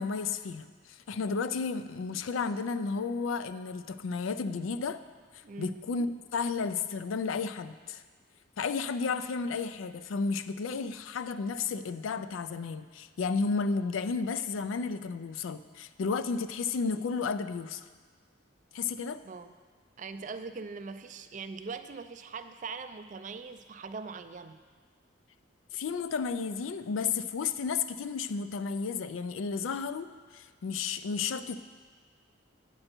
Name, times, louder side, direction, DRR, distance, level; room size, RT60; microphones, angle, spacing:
voice 1, 0.0-5.0 5.6-8.0 8.6-17.9 18.7-19.2 25.7-31.6, left 5 dB, 80° left, 12 dB, 0.4 m, -32 dB
voice 2, 5.4-5.8 19.2-19.5 20.0-24.6, right 4 dB, 40° right, 10 dB, 0.3 m, -41 dB
8.9 x 7.8 x 4.4 m, 1.5 s
head